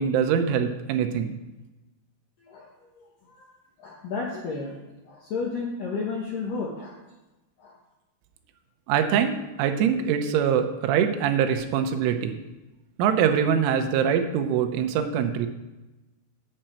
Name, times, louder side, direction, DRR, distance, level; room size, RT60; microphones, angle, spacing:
voice 1, 0.0-1.3 8.9-12.4 13.0-15.5, right 8 dB, 85° right, 6 dB, 3.3 m, -23 dB
voice 2, 2.4-3.5 3.8-4.8 5.0-7.0 7.6-7.7, left 4 dB, 75° left, -3 dB, 2.0 m, -33 dB
9.0 x 5.6 x 7.5 m, 1.0 s
omnidirectional pair, 5.5 m